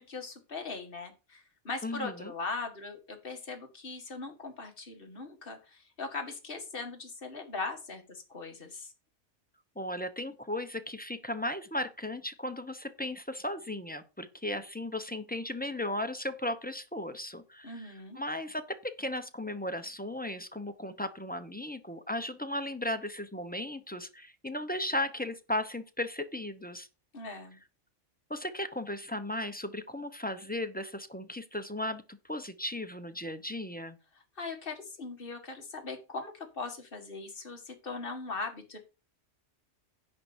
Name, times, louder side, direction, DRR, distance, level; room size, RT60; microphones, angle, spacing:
voice 1, 0.0-8.9 17.6-18.2 27.1-27.6 34.4-38.8, left 3 dB, 50° left, 3 dB, 2.1 m, -40 dB
voice 2, 1.8-2.3 9.8-26.9 28.3-34.0, left 1 dB, 10° left, 8 dB, 0.8 m, -36 dB
10.5 x 4.0 x 7.2 m, 0.30 s
omnidirectional pair, 1.2 m